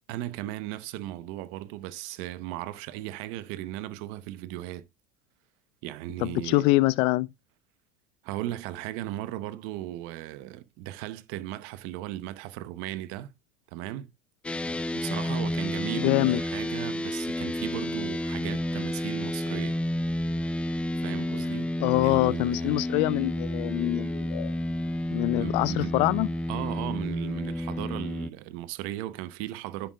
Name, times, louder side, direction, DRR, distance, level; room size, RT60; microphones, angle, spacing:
voice 1, 0.1-4.8 5.8-6.7 8.2-13.3 13.7-14.1 14.9-19.8 21.0-21.7 22.0-22.8 25.4-25.9 26.5-29.9, right 14 dB, 65° right, 0.8 m, -36 dB
voice 2, 6.2-7.3 16.0-16.4 21.8-24.5 25.1-26.3, left 20 dB, 60° left, 0.5 m, -24 dB
sound 1, 14.4-28.3, left 1 dB, 10° left, 0.5 m, -30 dB
10.0 x 7.8 x 2.3 m
supercardioid pair, 100°, 11 cm